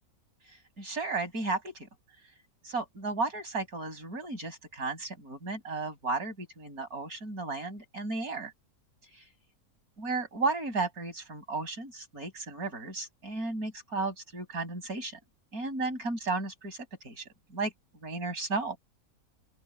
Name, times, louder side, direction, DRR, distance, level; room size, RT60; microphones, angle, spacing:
voice 1, 0.8-1.9 2.6-8.5 10.0-15.2 15.5-16.8 17.0-17.2 17.5-17.7 18.0-18.8, right 3 dB, 65° right, 6.9 m, -34 dB
open air
omnidirectional pair, 1.7 m